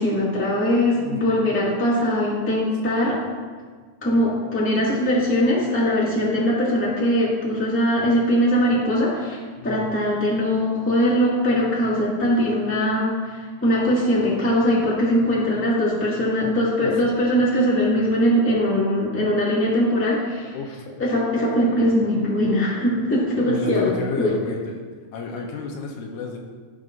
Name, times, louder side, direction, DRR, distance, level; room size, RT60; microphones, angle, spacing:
voice 1, 0.0-3.2 4.0-20.5 21.0-24.3, equal, 5° left, -6 dB, 1.3 m, -21 dB
voice 2, 16.8-17.1 20.5-20.9 23.4-24.8 25.1-26.4, left 5 dB, 80° left, 0 dB, 2.3 m, -32 dB
15.0 x 6.3 x 2.6 m, 1.5 s
omnidirectional pair, 3.6 m